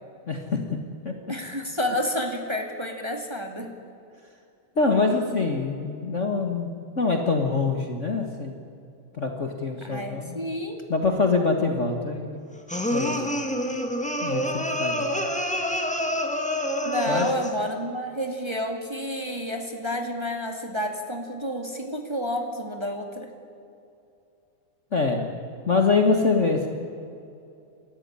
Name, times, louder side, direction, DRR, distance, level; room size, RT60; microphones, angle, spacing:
voice 1, 0.3-0.8 1.0-1.1 4.7-8.6 9.1-10.5 10.9-12.4 12.9-13.1 14.2-15.2 17.1-17.3 24.9-25.2 25.7-26.7, left 4 dB, 70° left, 3 dB, 0.7 m, -24 dB
voice 2, 1.3-3.7 9.8-10.8 16.8-23.3, equal, 10° right, 3 dB, 1.6 m, -30 dB
sound 1, 12.7-17.6, equal, 5° left, 0.5 m, -27 dB
28.5 x 14.0 x 9.8 m, 2.6 s
omnidirectional pair, 4.1 m